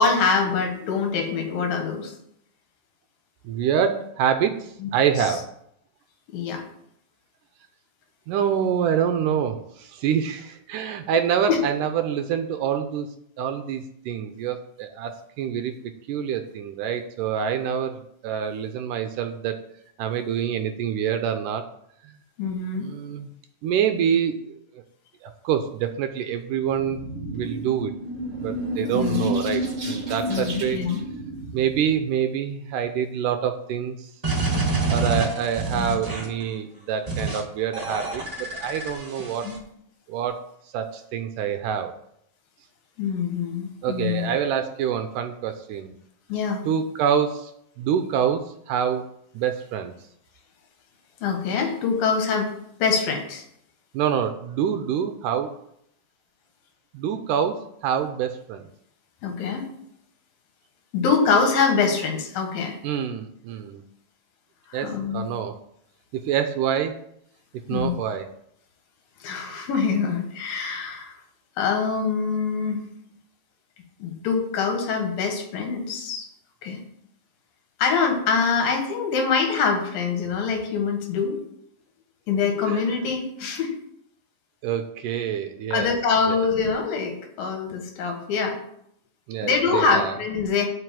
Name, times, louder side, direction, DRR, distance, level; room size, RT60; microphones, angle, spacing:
voice 1, 0.0-2.1 4.8-4.9 6.3-6.6 11.5-11.6 22.4-22.9 28.9-29.3 30.3-31.0 35.7-35.9 39.4-39.6 43.0-44.3 46.3-46.6 51.2-52.5 52.8-53.4 59.2-59.7 60.9-62.8 64.7-65.3 67.7-68.0 69.2-71.1 71.6-72.8 74.0-76.3 76.6-76.8 77.8-81.4 82.3-83.8 85.7-88.6 89.4-90.7, left 5 dB, 80° left, 3 dB, 3.3 m, -24 dB
voice 2, 3.4-5.4 8.3-13.1 13.4-15.7 16.1-19.6 20.0-21.6 22.8-23.3 23.6-24.8 25.2-27.0 27.3-27.9 28.4-30.8 31.5-34.1 34.9-39.5 40.1-40.4 40.7-41.9 43.8-45.9 46.7-49.1 49.3-49.9 53.9-55.5 56.9-58.6 62.8-63.8 64.7-65.6 66.1-67.0 67.7-68.3 82.7-82.8 84.6-86.0 86.3-86.5 89.3-90.2, right 8 dB, 80° right, 8 dB, 2.1 m, -26 dB
sound 1, 26.6-32.0, right 1 dB, 35° right, 1.5 m, -30 dB
sound 2, 34.2-36.4 37.1-37.4 37.7-39.6, right 3 dB, 20° right, 1.0 m, -27 dB
8.0 x 5.3 x 7.5 m, 0.72 s
omnidirectional pair, 4.1 m